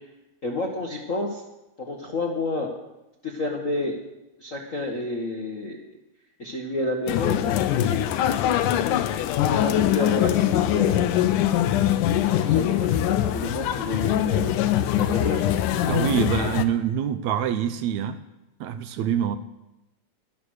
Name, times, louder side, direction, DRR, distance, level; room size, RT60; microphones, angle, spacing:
voice 1, 0.4-1.4 1.8-2.7 3.2-4.0 4.4-5.8 6.4-9.0 9.4-11.2 11.9-15.4, left 2 dB, 50° left, -1 dB, 0.9 m, -30 dB
sound 1, 7.1-16.7, left 11 dB, 85° left, 2.2 m, -23 dB
voice 2, 15.9-18.2 18.6-19.4, right 9 dB, 75° right, 10 dB, 1.8 m, -25 dB
13.0 x 11.5 x 6.3 m, 0.95 s
omnidirectional pair, 3.7 m